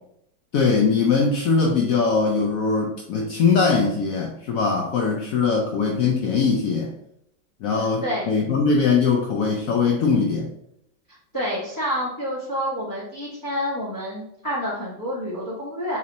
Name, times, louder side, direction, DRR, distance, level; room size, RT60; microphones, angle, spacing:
voice 1, 0.5-6.9 7.6-10.5, left 4 dB, 80° left, 1 dB, 0.7 m, -21 dB
voice 2, 7.7-8.3 11.3-16.0, equal, 15° left, -9 dB, 0.8 m, -28 dB
3.2 x 2.9 x 3.9 m, 0.74 s
omnidirectional pair, 2.0 m